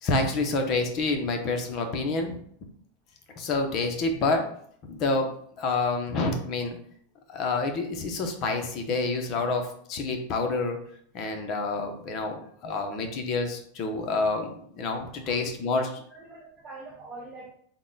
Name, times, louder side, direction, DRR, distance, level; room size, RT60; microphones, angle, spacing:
voice 1, 0.0-2.4 3.4-4.5 4.9-6.8 7.3-10.8 11.1-16.0, left 3 dB, 40° left, 4 dB, 0.7 m, -28 dB
voice 2, 15.2-15.8 16.1-17.5, right 2 dB, 20° right, -3 dB, 0.6 m, -45 dB
3.7 x 2.2 x 3.8 m, 0.62 s
supercardioid pair, 145°, 0 cm